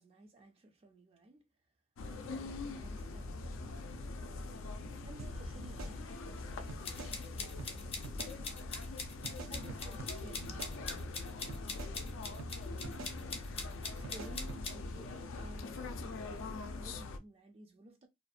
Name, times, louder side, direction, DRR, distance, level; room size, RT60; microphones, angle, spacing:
voice 1, 0.0-1.4 2.1-4.2 5.0-6.8 7.3-9.0 9.5-12.2 13.9-18.1, right 2 dB, 30° right, 0.3 m, -56 dB
sound 1, 2.0-17.2, left 3 dB, 85° left, 0.4 m, -43 dB
sound 2, 5.2-5.3 5.6-6.4 6.7-7.1 7.6-7.7 8.0-8.3 9.2-10.1 10.4-11.2 11.5-11.9 12.4-12.5 12.8-13.1 14.0-14.6, right 4 dB, 90° right, 0.5 m, -47 dB
sound 3, 6.8-14.8, left 4 dB, 30° left, 0.5 m, -43 dB
2.5 x 2.1 x 2.4 m
head